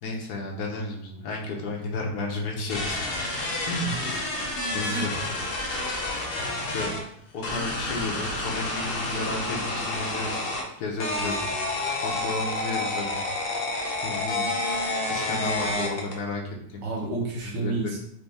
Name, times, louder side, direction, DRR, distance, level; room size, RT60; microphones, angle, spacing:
voice 1, 0.0-3.1 3.7-3.9 4.7-5.1 6.7-6.9 7.3-10.5 10.8-11.5 12.0-13.2 14.0-14.4 15.0-16.4 16.7-16.9 17.6-17.9, left 2 dB, 75° left, -1 dB, 1.4 m, -32 dB
sound 1, 2.7-7.0 7.4-10.6 11.0-16.2, left 2 dB, 50° left, 0.7 m, -29 dB
voice 2, 16.8-18.0, right 2 dB, 60° right, -4 dB, 1.5 m, -30 dB
5.0 x 2.6 x 3.3 m, 0.71 s
omnidirectional pair, 1.7 m